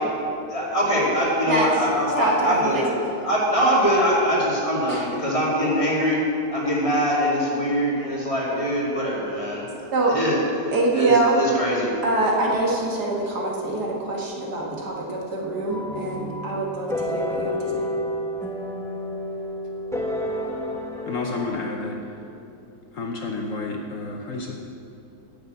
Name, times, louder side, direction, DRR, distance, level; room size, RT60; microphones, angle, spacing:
voice 1, 0.5-2.8 3.2-6.2 6.5-9.6 10.1-10.4 10.9-11.9, equal, 20° left, -6 dB, 2.5 m, -23 dB
voice 2, 1.5-1.8 2.2-2.9 4.9-5.1 7.7-7.8 9.9-10.2 10.7-11.4 12.0-17.9, right 2 dB, 75° right, -2 dB, 2.2 m, -24 dB
sound 1, 15.7-21.5, left 1 dB, 5° left, 0.7 m, -30 dB
voice 3, 21.1-22.0 22.9-24.5, left 3 dB, 55° left, 1 dB, 1.1 m, -30 dB
9.8 x 6.8 x 8.1 m, 2.8 s
omnidirectional pair, 1.8 m